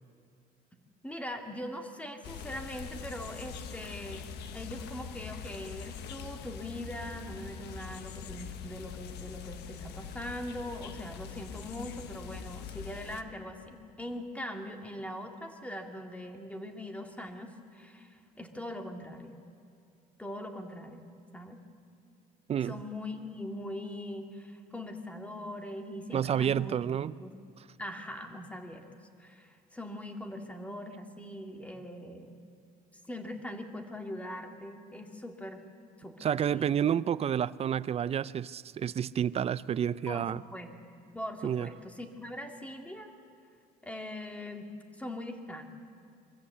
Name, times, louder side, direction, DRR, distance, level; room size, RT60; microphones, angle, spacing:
voice 1, 1.0-4.3 4.5-19.4 20.2-21.6 22.6-26.8 27.2-27.4 27.8-28.9 29.2-32.4 33.1-35.6 36.0-36.7 40.1-40.8 41.1-43.1 43.8-44.7 45.0-45.7, left 1 dB, 10° left, 4 dB, 2.1 m, -41 dB
sound 1, 2.2-13.2, left 7 dB, 80° left, 1.2 m, -43 dB
voice 2, 26.1-27.1 36.2-40.4 41.4-41.7, right 9 dB, 35° right, 18 dB, 0.5 m, -29 dB
23.5 x 14.5 x 8.2 m, 2.4 s
cardioid pair, 110°, 17 cm